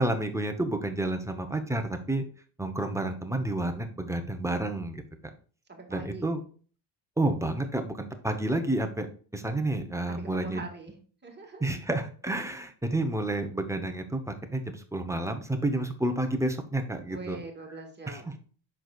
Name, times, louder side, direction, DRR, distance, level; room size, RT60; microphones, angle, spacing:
voice 1, 0.0-2.2 2.6-5.0 5.9-6.4 7.2-9.1 9.3-10.6 11.6-17.4 18.1-18.4, right 1 dB, 5° right, 6 dB, 0.8 m, -30 dB
voice 2, 5.7-6.3 10.1-11.8 17.1-18.4, right 4 dB, 20° right, 1 dB, 1.7 m, -43 dB
7.7 x 6.0 x 2.3 m, 0.42 s
cardioid pair, 155°, 47 cm